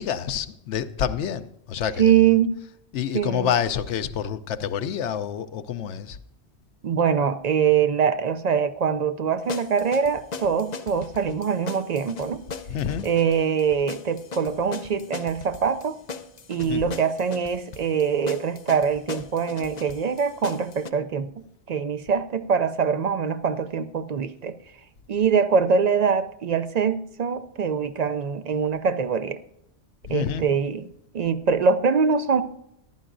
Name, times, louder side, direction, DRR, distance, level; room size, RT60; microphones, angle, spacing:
voice 1, 0.0-2.1 2.9-6.2 12.7-13.1 16.7-16.8 30.1-30.4, left 8 dB, 90° left, 0.9 m, -28 dB
voice 2, 2.0-2.6 3.1-3.5 6.8-12.4 13.0-16.0 16.5-21.3 21.7-24.5 25.1-29.4 30.1-30.9 31.1-32.4, right 6 dB, 60° right, 0.4 m, -23 dB
sound 1, 9.5-20.9, left 5 dB, 45° left, 0.6 m, -39 dB
14.5 x 11.0 x 2.6 m
omnidirectional pair, 1.2 m